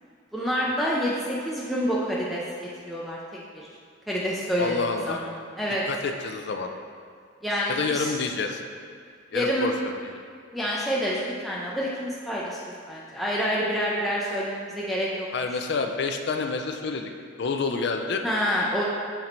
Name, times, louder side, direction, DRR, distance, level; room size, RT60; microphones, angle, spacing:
voice 1, 0.3-2.4 2.8-3.2 3.5-3.7 4.1-5.3 5.6-5.8 7.4-8.1 9.3-9.7 10.5-15.3 18.2-18.8, equal, ahead, -6 dB, 0.4 m, -27 dB
voice 2, 4.6-5.2 5.9-6.7 7.7-8.6 9.3-10.0 15.3-17.1 17.4-18.2, left 4 dB, 60° left, 5 dB, 0.4 m, -28 dB
5.9 x 3.9 x 4.3 m, 2.2 s
head